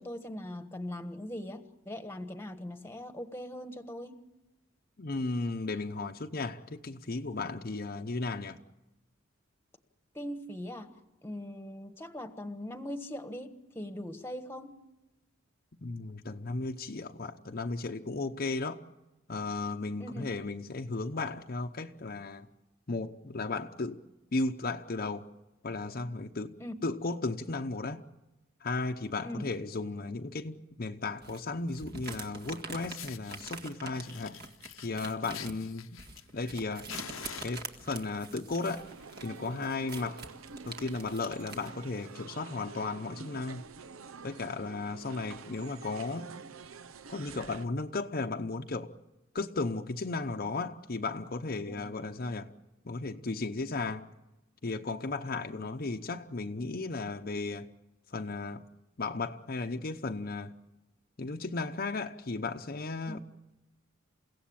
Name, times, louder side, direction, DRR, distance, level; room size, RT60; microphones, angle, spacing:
voice 1, 0.0-4.2 10.1-10.9 11.2-14.8 20.0-20.3 26.6-26.7 29.2-29.5 55.5-55.6 63.1-63.2, left 1 dB, 10° left, 1.3 m, -40 dB
voice 2, 5.0-8.6 15.8-18.8 19.3-22.5 22.9-24.0 24.3-25.3 25.6-26.5 26.8-28.0 28.6-34.4 34.8-36.0 36.3-36.9 37.4-38.9 39.2-40.3 40.7-43.6 44.2-46.3 47.1-48.9 49.3-52.5 52.8-54.1 54.6-57.7 58.1-58.6 59.0-60.5 61.2-63.2, left 3 dB, 45° left, 0.8 m, -35 dB
sound 1, 31.2-41.7, right 3 dB, 50° right, 2.1 m, -45 dB
Fire, 32.4-32.5 32.9-33.4 33.9-36.6 36.9-38.0 38.9-39.1 39.4-39.5 39.9-40.0 40.3-40.5 41.1-41.2 42.1-42.2, left 9 dB, 80° left, 0.9 m, -46 dB
sound 2, 38.7-47.7, right 5 dB, 85° right, 0.8 m, -48 dB
29.0 x 16.5 x 8.7 m
head